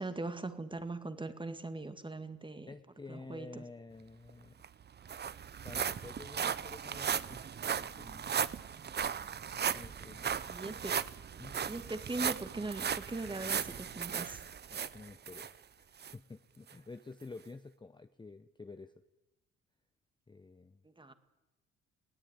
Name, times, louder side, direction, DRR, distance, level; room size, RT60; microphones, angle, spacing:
voice 1, 0.0-2.7 3.1-3.6 10.5-11.0 11.7-14.4 20.8-21.1, right 2 dB, 15° right, 10 dB, 1.9 m, -40 dB
voice 2, 2.7-4.6 5.6-8.4 9.5-10.8 11.4-11.6 14.7-18.9 20.3-20.8, left 3 dB, 15° left, 10 dB, 0.8 m, -51 dB
sound 1, 4.3-4.4 4.6-15.5 16.0-16.1 16.7-16.8, right 7 dB, 35° right, 0.7 m, -37 dB
20.5 x 16.5 x 9.8 m, 1.0 s
cardioid pair, 90°, 30 cm